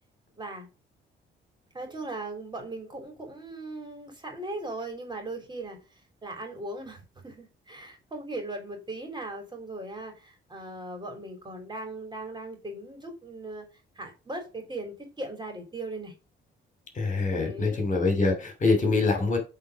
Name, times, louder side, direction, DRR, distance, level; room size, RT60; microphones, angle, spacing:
voice 1, 0.4-0.7 1.7-13.6 13.9-16.1 17.4-17.8, right 2 dB, 20° right, 3.2 m, -38 dB
voice 2, 16.9-19.4, left 3 dB, 40° left, 2.8 m, -24 dB
8.1 x 3.9 x 4.8 m
cardioid pair, 90°, 20 cm